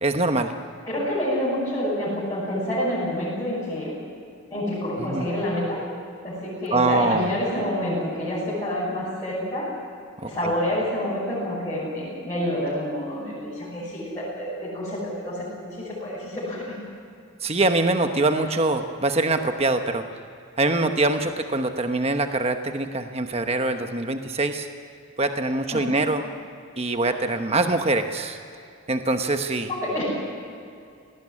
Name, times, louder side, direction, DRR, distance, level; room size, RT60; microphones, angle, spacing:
voice 1, 0.0-0.5 5.0-5.3 6.7-7.3 10.2-10.3 17.4-20.0 20.6-24.7 25.2-26.2 26.8-28.4 28.9-29.7, right 2 dB, 30° right, 6 dB, 1.1 m, -23 dB
voice 2, 0.9-3.9 4.5-5.8 6.2-9.7 10.2-16.8 18.4-18.5 25.7-26.0 29.7-30.0, left 1 dB, 15° left, -11 dB, 7.9 m, -28 dB
19.5 x 18.5 x 9.9 m, 2.4 s
head